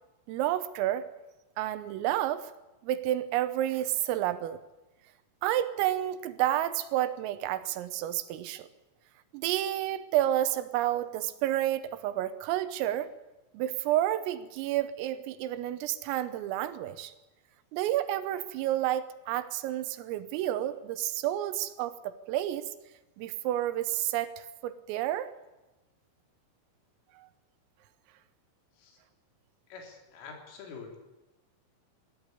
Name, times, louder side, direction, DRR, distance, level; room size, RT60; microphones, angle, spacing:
voice 1, 0.3-1.1 1.6-2.5 2.8-4.6 5.4-8.7 9.3-13.1 13.5-17.1 17.7-22.7 23.2-25.3, right 13 dB, 85° right, 12 dB, 3.7 m, -30 dB
voice 2, 29.7-31.0, left 5 dB, 75° left, 2 dB, 5.9 m, -46 dB
20.5 x 14.0 x 9.8 m, 1.0 s
omnidirectional pair, 5.9 m